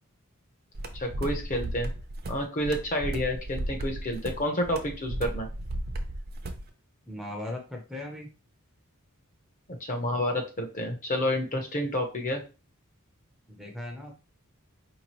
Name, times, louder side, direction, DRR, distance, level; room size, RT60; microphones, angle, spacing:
sound 1, 0.7-6.7, right 1 dB, 45° right, 0.6 m, -35 dB
voice 1, 0.9-1.9 2.3-5.5 9.8-12.4, left 1 dB, 40° left, 3 dB, 0.8 m, -29 dB
voice 2, 7.1-8.3 13.5-14.1, left 1 dB, ahead, 1 dB, 0.6 m, -38 dB
4.6 x 3.0 x 3.0 m, 0.33 s
head